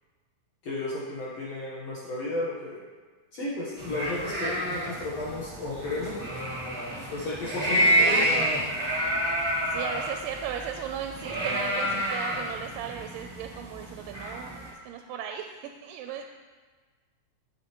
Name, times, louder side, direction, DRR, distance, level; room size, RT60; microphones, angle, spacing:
voice 1, 0.6-2.8 3.3-6.2 7.1-8.2, left 2 dB, 60° left, -6 dB, 2.1 m, -33 dB
sound 1, 3.8-14.7, equal, 30° right, 1.0 m, -29 dB
voice 2, 8.0-8.6 9.7-14.6 14.8-16.3, right 8 dB, 90° right, 4 dB, 2.2 m, -36 dB
9.9 x 7.7 x 3.0 m, 1.4 s
omnidirectional pair, 3.9 m